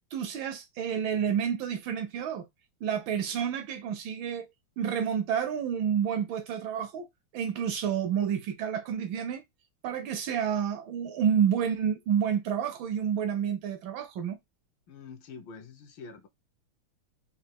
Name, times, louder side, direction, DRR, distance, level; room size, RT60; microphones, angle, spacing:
voice 1, 0.1-2.4 2.8-4.5 4.8-7.1 7.3-9.4 9.8-14.4, right 8 dB, 75° right, 1.2 m, -29 dB
voice 2, 14.9-16.3, left 5 dB, 70° left, 1.3 m, -46 dB
4.3 x 2.3 x 2.8 m
omnidirectional pair, 2.4 m